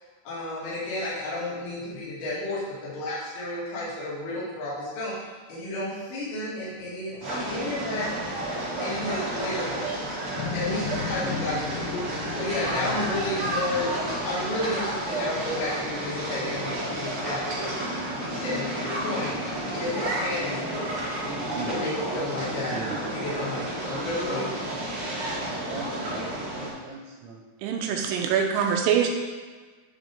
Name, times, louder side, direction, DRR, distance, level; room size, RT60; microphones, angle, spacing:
voice 1, 0.2-5.1 5.5-8.1 8.8-9.9 10.5-11.9 12.3-13.9 14.2-17.7 18.2-19.4 19.7-21.0 21.7-22.7 23.1-24.5, left 1 dB, 50° left, -9 dB, 3.2 m, -32 dB
Laughter, 6.7-11.0 12.6-15.6 15.9-16.0, left 5 dB, 70° left, 2.7 m, -45 dB
sound 1, 7.2-26.7, right 1 dB, 45° right, 1.8 m, -31 dB
sound 2, 10.4-16.9, left 6 dB, 90° left, 3.4 m, -37 dB
voice 2, 22.7-23.1 25.7-27.4, right 4 dB, 70° right, -3 dB, 3.5 m, -39 dB
voice 3, 27.6-29.1, right 8 dB, 85° right, 2 dB, 3.2 m, -24 dB
9.6 x 5.1 x 3.6 m, 1.4 s
omnidirectional pair, 5.9 m